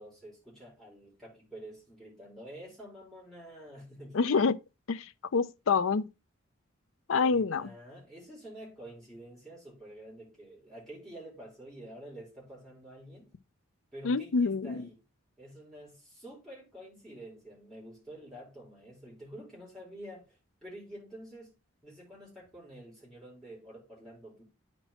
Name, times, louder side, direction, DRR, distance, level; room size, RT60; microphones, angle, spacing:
voice 1, 0.0-4.2 7.2-13.3 13.9-15.0 15.4-21.5 21.8-24.4, right 1 dB, ahead, 4.2 m, -48 dB
voice 2, 4.1-4.6 4.9-6.1 7.1-7.7 14.0-14.9, left 5 dB, 75° left, 0.5 m, -27 dB
9.0 x 4.5 x 4.3 m
head